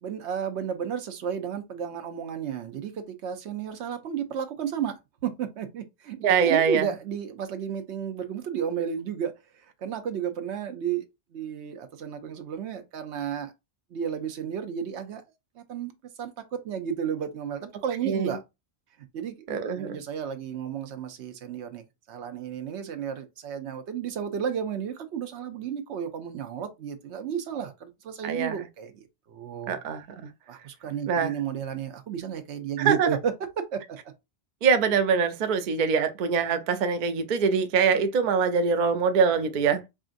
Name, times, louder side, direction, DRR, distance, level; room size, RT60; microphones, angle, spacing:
voice 1, 0.0-5.0 5.2-11.1 11.3-13.5 13.9-15.2 15.6-15.9 16.2-18.4 19.1-19.5 19.7-29.8 30.5-34.0, right 8 dB, 80° right, 1.0 m, -32 dB
voice 2, 6.2-6.9 18.1-18.4 19.5-20.0 28.2-28.5 29.7-30.3 31.1-31.3 32.8-33.1 34.6-39.8, right 6 dB, 55° right, 0.6 m, -24 dB
4.7 x 2.5 x 2.5 m
omnidirectional pair, 1.1 m